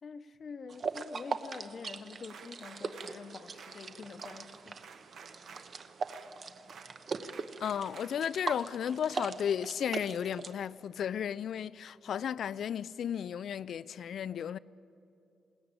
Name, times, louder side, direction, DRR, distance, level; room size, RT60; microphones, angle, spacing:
voice 1, 0.0-4.8, left 5 dB, 45° left, 0.8 m, -46 dB
sound 1, 0.7-10.5, right 5 dB, 45° right, 0.9 m, -41 dB
sound 2, 2.2-10.5, right 6 dB, 75° right, 1.4 m, -54 dB
voice 2, 7.6-14.6, left 8 dB, 65° left, 0.4 m, -34 dB
21.0 x 18.0 x 8.9 m
cardioid pair, 130°, 0 cm